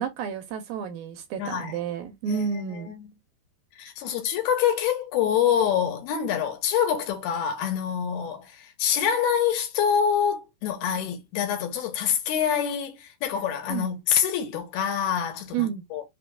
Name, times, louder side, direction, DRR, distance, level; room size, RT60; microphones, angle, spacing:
voice 1, 0.0-2.9 13.7-13.9 15.5-15.8, right 7 dB, 80° right, 2.1 m, -30 dB
voice 2, 1.4-1.8 2.3-2.5 2.9-3.1 3.8-16.0, left 8 dB, 75° left, 2.8 m, -26 dB
6.0 x 3.0 x 2.3 m
omnidirectional pair, 4.6 m